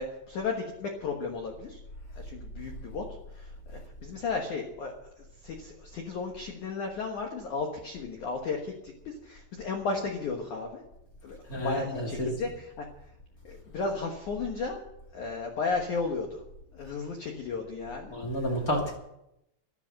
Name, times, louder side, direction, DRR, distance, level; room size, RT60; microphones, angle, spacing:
voice 1, 0.0-1.8 2.1-3.0 3.3-4.9 5.4-10.8 11.2-12.9 13.4-14.8 15.1-16.4 16.7-18.1, left 4 dB, 70° left, 2 dB, 1.8 m, -34 dB
voice 2, 11.5-12.3 18.1-19.0, equal, 30° left, -1 dB, 1.8 m, -30 dB
13.0 x 12.5 x 7.6 m, 0.84 s
omnidirectional pair, 5.7 m